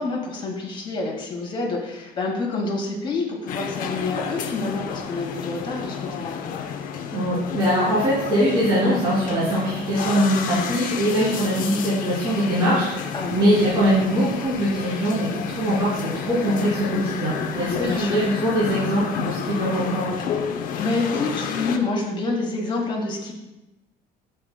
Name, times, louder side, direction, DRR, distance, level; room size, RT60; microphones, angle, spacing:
voice 1, 0.0-6.3 13.1-13.6 17.7-18.3 20.8-23.3, left 3 dB, 25° left, -2 dB, 1.9 m, -27 dB
sound 1, 3.5-21.8, left 7 dB, 50° left, 0.7 m, -31 dB
voice 2, 7.1-15.3 15.5-20.2, equal, 25° right, -11 dB, 2.9 m, -22 dB
12.5 x 8.1 x 2.2 m, 1.0 s
cardioid pair, 180°, 18 cm